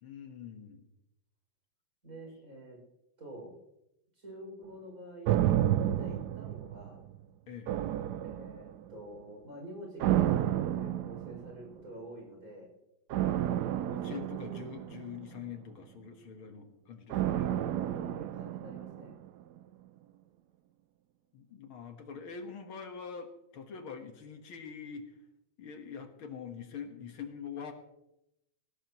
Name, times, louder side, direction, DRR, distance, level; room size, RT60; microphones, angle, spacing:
voice 1, 0.0-0.9 7.5-7.7 14.0-17.5 21.3-25.2 25.6-27.7, left 6 dB, 75° left, 5 dB, 2.3 m, -44 dB
voice 2, 2.0-2.8 3.2-3.5 4.2-5.5 5.8-7.0 8.2-12.7 13.9-14.7 17.9-19.2, right 1 dB, 40° right, 0 dB, 6.7 m, -47 dB
sound 1, 5.3-7.2 7.7-8.9 10.0-11.7 13.1-15.5 17.1-19.3 19.6-19.7, right 12 dB, 70° right, 1.0 m, -31 dB
19.5 x 17.0 x 3.1 m, 0.85 s
omnidirectional pair, 2.3 m